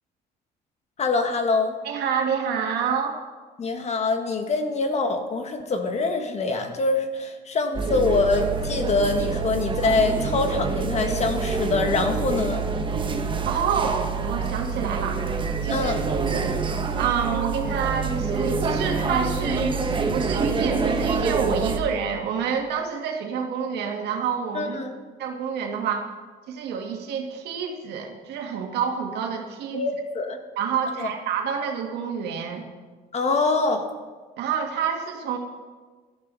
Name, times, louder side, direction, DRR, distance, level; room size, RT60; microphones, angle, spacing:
voice 1, 1.0-1.7 3.6-12.6 15.7-16.0 24.5-24.9 29.7-30.4 31.0-31.1 33.1-33.8, left 3 dB, 40° left, 6 dB, 1.7 m, -24 dB
voice 2, 1.8-3.2 13.5-16.5 17.0-19.7 20.1-24.8 25.2-26.1 26.5-29.8 30.6-32.6 34.4-35.4, right 7 dB, 80° right, 2 dB, 2.1 m, -28 dB
sound 1, 7.7-21.8, right 4 dB, 30° right, 1.3 m, -26 dB
16.5 x 13.0 x 4.1 m, 1.4 s
cardioid pair, 110°, 17 cm